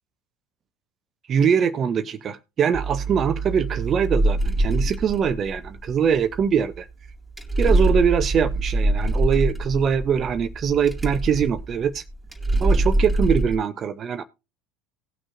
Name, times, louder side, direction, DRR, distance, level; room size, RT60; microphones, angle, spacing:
voice 1, 1.3-6.9 7.6-12.0 12.6-14.2, right 7 dB, 40° right, 10 dB, 0.7 m, -22 dB
sound 1, 2.7-13.6, right 2 dB, 10° right, 2.3 m, -24 dB
18.5 x 6.2 x 2.5 m, 0.27 s
hypercardioid pair, 70°, 0 cm